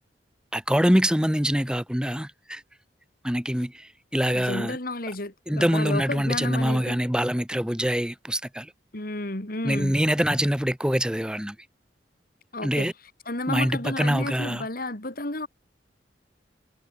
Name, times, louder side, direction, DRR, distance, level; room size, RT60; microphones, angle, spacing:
voice 1, 0.5-2.6 3.2-4.8 5.5-8.7 9.6-11.6 12.6-12.9 13.5-14.7, equal, 5° right, 1.5 m, -24 dB
voice 2, 4.3-7.0 8.9-10.0 12.5-12.9 13.3-15.5, left 2 dB, 55° left, 3.2 m, -32 dB
head